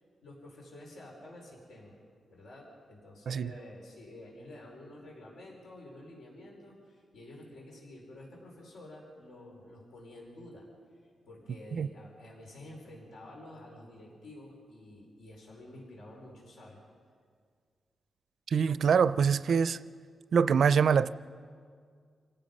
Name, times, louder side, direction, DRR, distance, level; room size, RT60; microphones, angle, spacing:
voice 1, 0.2-1.9 2.3-10.7 11.3-16.8, left 1 dB, 85° left, -2 dB, 5.0 m, -50 dB
voice 2, 18.5-19.8 20.3-21.1, right 6 dB, 60° right, 15 dB, 0.4 m, -24 dB
28.5 x 18.0 x 5.4 m, 2.1 s
wide cardioid pair, 150°, 0 cm